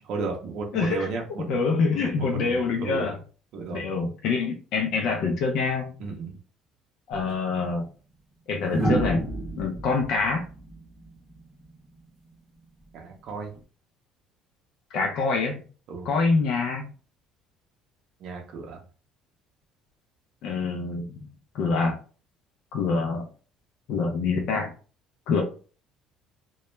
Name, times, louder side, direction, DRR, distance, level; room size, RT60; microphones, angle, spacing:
voice 1, 0.0-1.6 1.9-3.1 3.5-3.8 6.0-6.4 12.9-13.5 15.9-16.1 18.2-18.8, right 4 dB, 55° right, 1 dB, 0.5 m, -34 dB
voice 2, 0.7-1.1 1.5-3.2 3.7-6.0 7.1-7.9 8.5-9.2 9.6-10.4 14.9-15.6 16.0-16.8 20.4-21.3 21.5-22.0 22.7-23.3 23.9-24.7 25.3-25.4, left 4 dB, 60° left, 2 dB, 0.5 m, -25 dB
sound 1, 7.1-7.3 8.7-11.7 13.3-13.6, right 2 dB, ahead, 0.8 m, -30 dB
2.2 x 2.0 x 3.0 m, 0.38 s
cardioid pair, 160°, 0 cm